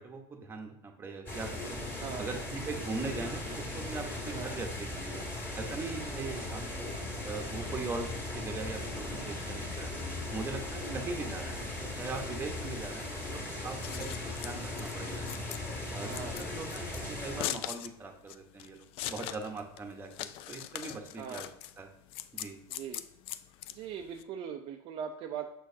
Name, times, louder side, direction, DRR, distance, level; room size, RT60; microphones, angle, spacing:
voice 1, 0.0-1.8 2.2-5.3 5.5-6.8 7.2-9.9 10.3-11.6 12.0-14.1 14.4-15.2 15.9-21.5 21.8-21.9 22.3-22.6, right 3 dB, 20° right, 3 dB, 1.0 m, -40 dB
sound 1, 1.3-17.4, left 2 dB, 20° left, 1.9 m, -38 dB
voice 2, 2.0-2.3 4.3-4.6 6.2-6.4 10.8-11.1 12.6-12.9 13.9-14.2 16.0-16.4 21.2-21.5 22.7-23.0 23.7-25.5, right 8 dB, 45° right, 3 dB, 0.5 m, -41 dB
Scissors, 13.6-24.2, left 12 dB, 50° left, 0.4 m, -41 dB
6.3 x 6.3 x 2.7 m, 0.81 s
supercardioid pair, 130°, 12 cm